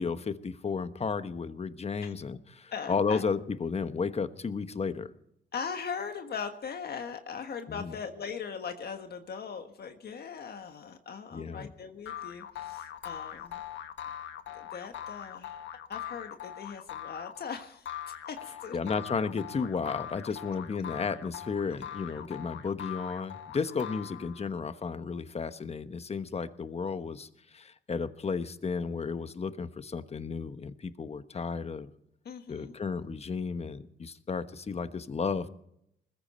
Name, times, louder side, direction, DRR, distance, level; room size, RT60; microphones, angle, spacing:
voice 1, 0.0-5.1 7.7-7.9 11.3-11.7 18.7-31.9 32.5-35.5, left 5 dB, 30° left, 11 dB, 1.1 m, -33 dB
voice 2, 2.7-3.2 5.5-13.6 14.5-15.6 15.9-18.9 23.7-23.8 32.2-32.8, left 6 dB, 55° left, 6 dB, 1.5 m, -40 dB
sound 1, 12.1-24.6, left 10 dB, 70° left, 1.3 m, -42 dB
20.5 x 14.5 x 4.4 m, 0.74 s
cardioid pair, 90°, 20 cm